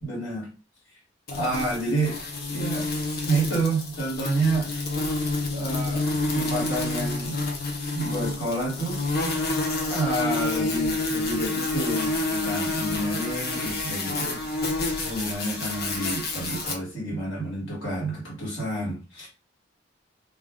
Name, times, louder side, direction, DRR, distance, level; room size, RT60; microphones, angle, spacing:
voice 1, 0.0-0.5 1.3-2.2 2.5-2.9 3.2-4.7 5.5-7.4 7.9-9.4 9.9-14.7 15.0-19.3, right 2 dB, 85° left, 1.3 m, -29 dB
sound 1, 1.3-16.7, left 2 dB, 50° left, 0.6 m, -28 dB
2.4 x 2.0 x 3.5 m
head